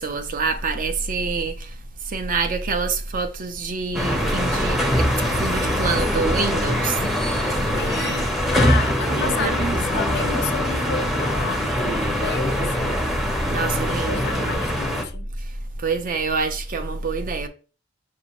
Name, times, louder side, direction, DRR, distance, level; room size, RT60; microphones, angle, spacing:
voice 1, 0.0-1.8 2.0-7.8 9.1-9.8 13.5-14.6 15.8-17.5, right 4 dB, 45° right, 0.5 m, -26 dB
sound 1, 3.9-15.0, equal, ahead, 0.6 m, -23 dB
voice 2, 7.8-11.7 12.1-13.0 14.1-15.3, left 6 dB, 55° left, 0.4 m, -31 dB
5.0 x 2.6 x 2.9 m
head